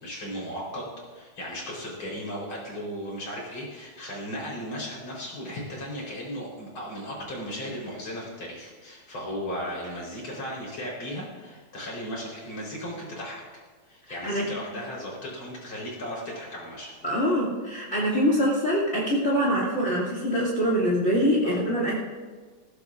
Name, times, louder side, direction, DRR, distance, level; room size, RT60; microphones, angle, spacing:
voice 1, 0.0-13.4 13.9-16.9 21.4-21.6, equal, 90° left, -4 dB, 4.7 m, -36 dB
voice 2, 17.0-22.0, equal, 35° left, -4 dB, 2.7 m, -24 dB
20.0 x 15.0 x 2.5 m, 1.5 s
omnidirectional pair, 2.2 m